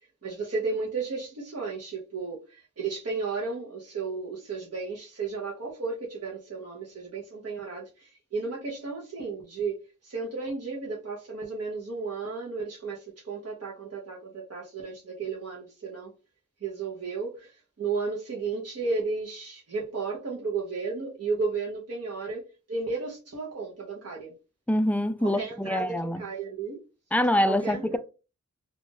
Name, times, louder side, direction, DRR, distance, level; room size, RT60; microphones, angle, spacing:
voice 1, 0.2-16.1 16.6-24.3 25.2-26.8 27.5-28.0, right 4 dB, 50° right, 0.9 m, -34 dB
voice 2, 24.7-26.2 27.1-28.0, left 1 dB, 5° left, 0.3 m, -25 dB
2.5 x 2.4 x 3.8 m
cardioid pair, 45°, 31 cm